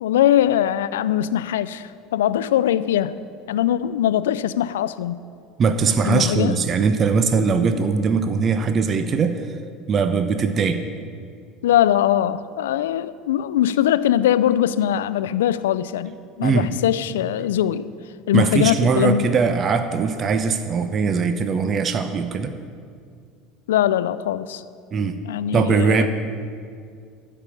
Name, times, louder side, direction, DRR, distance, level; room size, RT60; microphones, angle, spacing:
voice 1, 0.0-3.2 3.5-5.2 6.0-6.6 11.6-17.9 18.3-19.4 23.7-24.6 25.3-26.1, left 11 dB, 80° left, 0.4 m, -21 dB
voice 2, 5.6-9.6 9.9-10.8 16.4-16.7 18.3-22.6 24.9-25.2 25.5-26.1, right 5 dB, 40° right, 0.7 m, -20 dB
13.0 x 5.4 x 8.4 m
hypercardioid pair, 80°, 0 cm